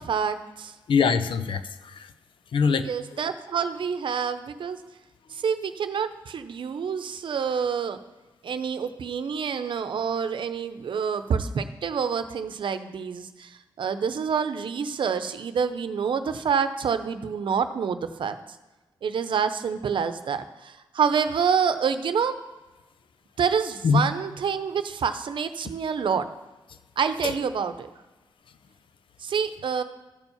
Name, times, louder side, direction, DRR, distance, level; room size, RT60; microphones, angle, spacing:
voice 1, 0.0-0.7 2.7-4.8 5.3-8.0 8.4-18.4 19.0-22.4 23.4-26.3 27.0-27.9 29.2-29.8, right 6 dB, 70° right, 10 dB, 0.7 m, -27 dB
voice 2, 0.9-2.1 2.5-3.2 23.8-24.1 27.2-27.3, left 5 dB, 75° left, 11 dB, 0.6 m, -23 dB
13.0 x 4.5 x 7.0 m, 1.1 s
cardioid pair, 70°, 9 cm